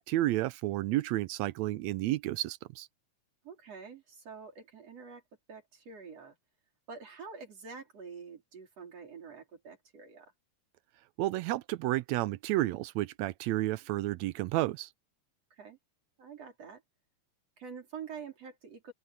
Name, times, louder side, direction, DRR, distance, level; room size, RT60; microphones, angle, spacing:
voice 1, 0.0-2.9 11.2-14.9, right 16 dB, 80° right, 1.7 m, -31 dB
voice 2, 3.4-5.2 5.5-6.3 6.9-10.3 15.5-15.8 16.2-16.8 17.6-18.9, right 5 dB, 55° right, 5.0 m, -47 dB
open air
omnidirectional pair, 3.4 m